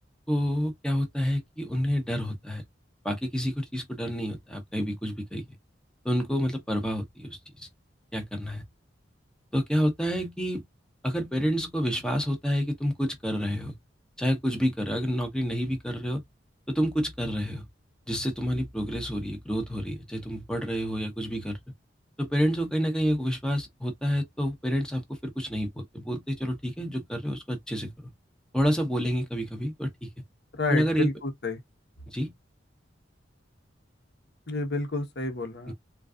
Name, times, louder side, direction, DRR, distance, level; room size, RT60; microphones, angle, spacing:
voice 1, 0.3-2.6 3.0-5.4 6.0-7.7 8.1-8.6 9.5-10.6 11.0-13.8 14.2-16.2 16.7-17.6 18.1-21.6 22.2-27.9 28.5-30.1 30.7-31.1 32.1-32.3 35.7-35.8, equal, 5° left, 1.0 m, -28 dB
voice 2, 30.5-31.6 34.5-35.7, left 3 dB, 65° left, 1.1 m, -30 dB
3.9 x 2.5 x 2.4 m
head